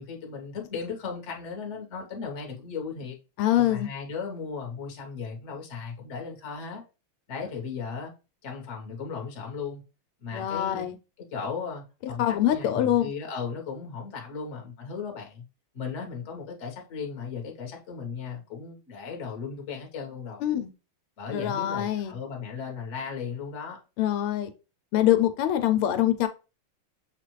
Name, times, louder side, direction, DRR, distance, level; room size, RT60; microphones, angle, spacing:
voice 1, 0.0-3.2 3.6-6.8 7.3-8.1 8.4-9.8 10.2-10.9 11.3-15.4 15.7-20.4 21.2-23.8, left 5 dB, 45° left, 1.1 m, -36 dB
voice 2, 3.4-3.9 10.3-11.0 12.2-13.0 20.4-20.7 21.3-22.1 24.0-24.5 24.9-26.3, left 12 dB, 85° left, 1.5 m, -24 dB
7.1 x 2.5 x 3.0 m
omnidirectional pair, 2.4 m